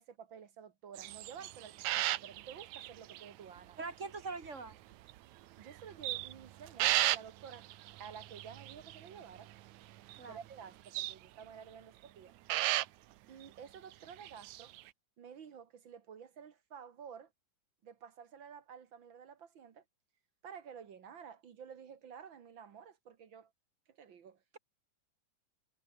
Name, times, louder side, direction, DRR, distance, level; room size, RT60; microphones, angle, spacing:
voice 1, 0.0-3.8 5.6-7.7 8.0-9.5 10.3-12.3 13.3-14.7 15.2-17.3 17.8-19.8 20.4-23.5 23.9-24.4, right 7 dB, 50° right, 1.7 m, -51 dB
sound 1, 1.0-3.3 3.6-3.7 4.4-5.2 5.6-9.6 9.9-10.4 10.9-11.2 12.5-12.9 13.4-13.5 13.9-14.9, right 15 dB, 70° right, 2.0 m, -35 dB
voice 2, 3.8-4.8 10.2-10.4, right 4 dB, 30° right, 1.6 m, -42 dB
omnidirectional pair, 3.8 m